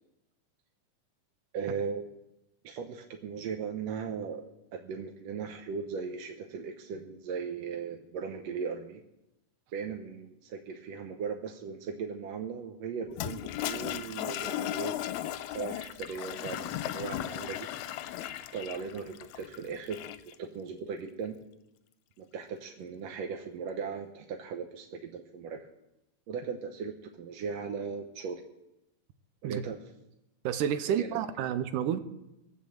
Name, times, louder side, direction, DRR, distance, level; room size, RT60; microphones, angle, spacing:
voice 1, 1.5-2.0 2.6-4.4 4.7-9.0 9.7-15.0 15.5-17.7 18.5-20.0 20.3-21.4 22.2-25.7 26.3-28.4 29.4-29.8 31.0-31.2, right 6 dB, 65° right, 3 dB, 1.8 m, -38 dB
Toilet flush, 13.1-20.3, left 12 dB, 75° left, 1.9 m, -36 dB
voice 2, 30.4-32.0, right 9 dB, 85° right, 11 dB, 2.4 m, -30 dB
18.5 x 7.0 x 7.7 m, 0.90 s
omnidirectional pair, 3.7 m